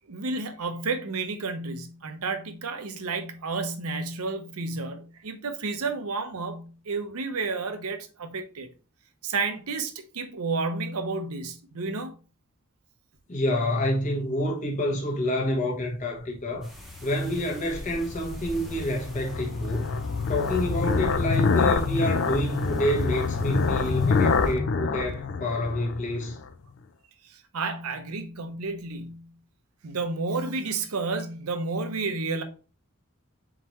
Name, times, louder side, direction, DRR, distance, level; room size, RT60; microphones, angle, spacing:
voice 1, 0.1-8.7 9.2-12.1 27.2-29.3 29.8-32.4, right 3 dB, 80° right, 0.7 m, -31 dB
voice 2, 13.3-16.7 17.0-20.0 20.3-26.4, left 1 dB, 35° left, 0.9 m, -28 dB
sound 1, 16.6-24.5, equal, ahead, 0.9 m, -46 dB
sound 2, 16.9-26.5, left 4 dB, 55° left, 0.4 m, -27 dB
4.3 x 3.7 x 3.0 m
head